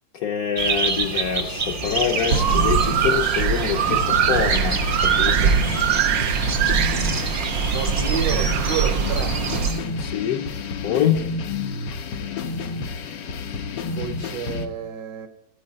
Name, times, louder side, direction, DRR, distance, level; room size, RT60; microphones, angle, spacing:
voice 1, 0.1-4.8 5.0-5.6 10.0-10.5 10.8-11.3, left 8 dB, 60° left, 1.1 m, -25 dB
sound 1, 0.5-9.8, right 4 dB, 40° right, 0.8 m, -28 dB
sound 2, 1.9-14.7, left 4 dB, 80° left, 1.5 m, -31 dB
sound 3, 2.3-9.7, right 8 dB, 85° right, 1.4 m, -22 dB
voice 2, 7.7-9.4 14.0-15.3, right 8 dB, 70° right, 1.5 m, -30 dB
13.5 x 4.8 x 8.9 m
omnidirectional pair, 1.9 m